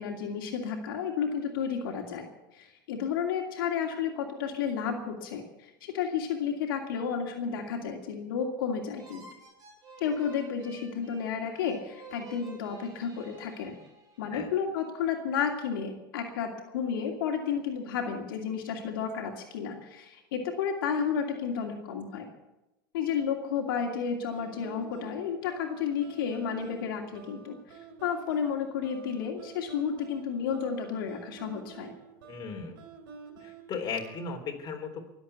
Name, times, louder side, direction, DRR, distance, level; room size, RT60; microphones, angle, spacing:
voice 1, 0.0-2.3 2.5-9.2 10.0-13.8 14.2-22.3 22.9-27.6 28.0-31.9, left 7 dB, 80° left, 1 dB, 2.6 m, -32 dB
sound 1, 9.0-14.5, right 3 dB, 30° right, 6.2 m, -51 dB
sound 2, 24.3-34.4, right 6 dB, 85° right, 3.1 m, -49 dB
voice 2, 32.3-32.8 33.4-35.2, left 5 dB, 35° left, 2 dB, 3.5 m, -36 dB
21.5 x 8.0 x 8.2 m, 0.97 s
supercardioid pair, 115°, 11 cm